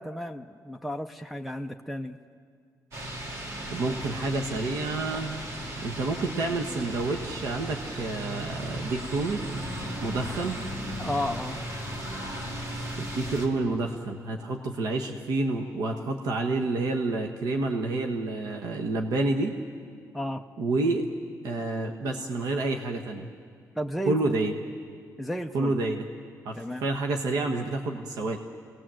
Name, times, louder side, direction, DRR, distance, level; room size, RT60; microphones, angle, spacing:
voice 1, 0.0-2.2 11.0-11.6 20.1-20.4 23.8-24.2 25.2-25.7 26.6-26.9, equal, ahead, 3 dB, 0.5 m, -33 dB
sound 1, 2.9-13.5, equal, 50° right, 2.9 m, -36 dB
voice 2, 3.7-5.4 5.8-9.4 10.0-10.6 13.0-19.5 20.6-21.1 21.4-23.3 24.1-24.5 25.5-26.1 26.4-28.4, right 2 dB, 85° right, 3 dB, 1.3 m, -29 dB
27.5 x 19.0 x 7.7 m, 2.2 s
wide cardioid pair, 160°, 6 cm